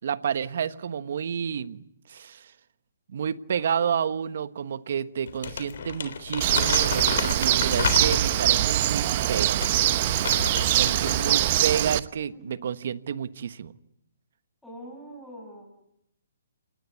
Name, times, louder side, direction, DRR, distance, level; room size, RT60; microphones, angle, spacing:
voice 1, 0.0-1.8 2.1-2.5 3.1-10.1 10.8-13.7, right 8 dB, 60° right, 13 dB, 1.3 m, -30 dB
Crumpling crinkling, 5.3-8.5 9.1-11.3 11.6-11.9, left 6 dB, 60° left, 3.6 m, -32 dB
Bird, 6.4-12.0, right 14 dB, 40° right, 0.9 m, -23 dB
voice 2, 12.3-12.6 14.6-15.6, equal, 5° left, -5 dB, 7.7 m, -45 dB
28.5 x 19.0 x 9.7 m, 0.81 s
hypercardioid pair, 150°, 0 cm